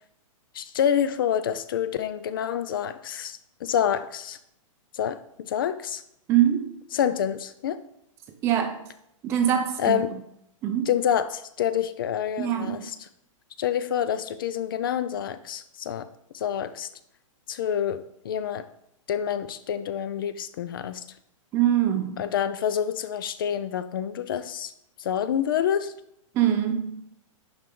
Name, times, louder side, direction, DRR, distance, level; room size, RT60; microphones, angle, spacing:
voice 1, 0.5-4.4 4.9-6.0 6.9-7.8 9.8-10.1 10.9-13.0 13.6-16.1 16.3-16.9 17.5-18.7 19.1-21.0 22.2-24.7 25.0-25.9, left 9 dB, 40° left, 13 dB, 0.4 m, -27 dB
voice 2, 6.3-6.7 8.4-8.8 9.2-10.0 10.6-10.9 12.4-12.9 21.5-22.2 26.3-27.0, right 10 dB, 15° right, 7 dB, 0.5 m, -23 dB
11.0 x 4.5 x 3.7 m, 0.75 s
hypercardioid pair, 170°, 17 cm